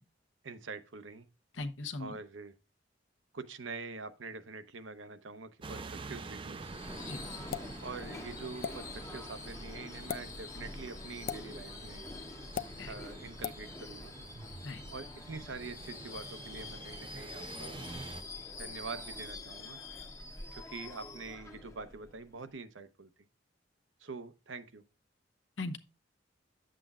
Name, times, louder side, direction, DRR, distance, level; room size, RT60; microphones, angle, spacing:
voice 1, 0.4-1.3 2.0-2.5 3.3-6.6 7.8-12.0 12.9-14.1 14.9-17.8 18.6-19.8 20.5-23.1 24.0-24.8, right 4 dB, 85° right, 0.8 m, -45 dB
voice 2, 1.6-2.1 7.1-7.2 12.8-12.9 14.6-14.8 25.6-25.8, left 3 dB, 85° left, 0.9 m, -38 dB
sound 1, 5.6-18.2, right 3 dB, 25° right, 0.4 m, -48 dB
Subway metro underground / Screech, 6.5-22.5, left 2 dB, 15° left, 0.7 m, -46 dB
sound 2, 7.5-7.7 8.6-8.8 10.0-10.2 11.3-11.4 12.6-12.7 13.4-13.6, left 7 dB, 50° left, 0.4 m, -36 dB
10.0 x 7.6 x 2.4 m
head